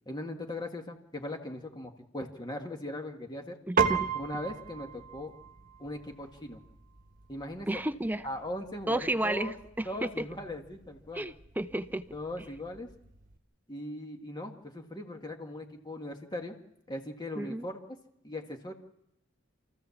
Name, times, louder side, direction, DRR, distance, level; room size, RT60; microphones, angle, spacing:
voice 1, 0.1-3.6 4.1-5.3 5.8-6.6 7.3-7.8 8.2-9.6 9.9-11.3 12.1-12.9 13.7-16.6 16.9-17.8 18.2-18.7, left 1 dB, 20° left, 3 dB, 1.8 m, -39 dB
voice 2, 3.7-4.1 7.7-8.2 8.9-10.1 11.1-12.0 17.4-17.7, right 1 dB, 10° right, 12 dB, 0.7 m, -32 dB
Piano, 3.8-13.4, right 6 dB, 45° right, 1.3 m, -37 dB
27.0 x 15.0 x 7.2 m, 0.86 s
head